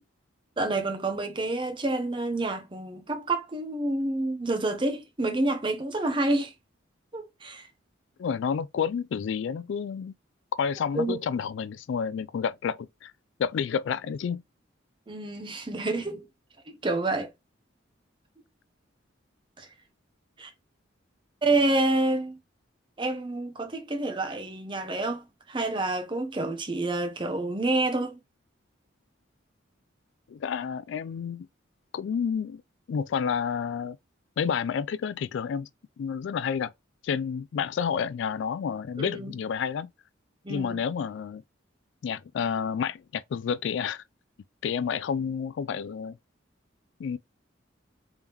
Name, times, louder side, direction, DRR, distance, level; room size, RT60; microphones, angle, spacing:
voice 1, 0.6-6.5 7.1-7.7 10.9-11.2 15.1-16.2 16.7-17.3 19.6-19.7 20.4-20.5 21.4-22.4 23.0-28.2 39.0-39.3 40.4-40.8 45.2-45.4, right 2 dB, 25° right, 0.7 m, -28 dB
voice 2, 8.2-10.1 10.6-13.1 13.4-14.4 30.3-31.5 31.9-32.6 32.9-34.0 34.4-35.7 36.0-36.7 37.0-39.9 40.5-41.4 42.0-44.0 44.6-46.2 47.0-47.2, left 7 dB, 65° left, 0.3 m, -30 dB
3.5 x 3.5 x 2.9 m
head